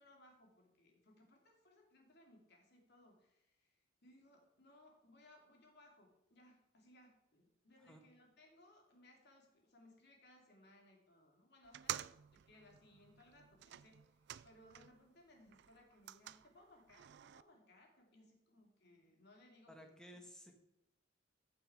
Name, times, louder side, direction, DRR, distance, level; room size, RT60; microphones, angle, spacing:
voice 1, 0.0-19.9, left 1 dB, 55° left, 0 dB, 2.8 m, -65 dB
sound 1, 11.6-15.1 15.4-17.4, right 11 dB, 60° right, 0.4 m, -50 dB
voice 2, 19.7-20.5, equal, 5° left, 2 dB, 1.7 m, -56 dB
15.0 x 6.1 x 4.9 m, 0.84 s
head